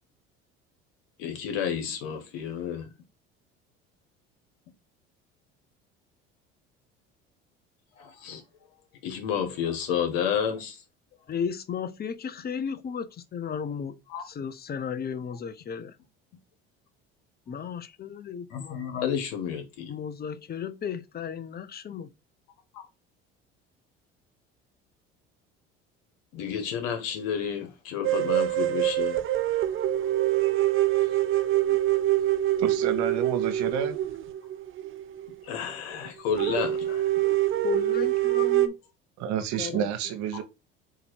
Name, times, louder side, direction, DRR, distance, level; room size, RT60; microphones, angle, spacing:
voice 1, 1.2-2.9 8.0-8.4 9.0-10.8 14.1-14.2 18.5-20.0 22.7-22.8 26.3-29.2 35.4-37.1, left 8 dB, 75° left, 1.4 m, -31 dB
voice 2, 11.3-13.9 14.3-15.9 17.5-18.8 19.9-22.1 31.7-31.8 37.3-37.4 37.6-38.7 39.5-39.9, left 7 dB, 30° left, 0.7 m, -34 dB
sound 1, 28.0-35.3 35.7-35.8 36.0-36.1 36.4-38.7, right 14 dB, 45° right, 0.6 m, -25 dB
voice 3, 32.6-34.0 39.2-40.4, right 9 dB, 65° right, 0.9 m, -29 dB
3.9 x 2.8 x 4.5 m
hypercardioid pair, 70°, 30 cm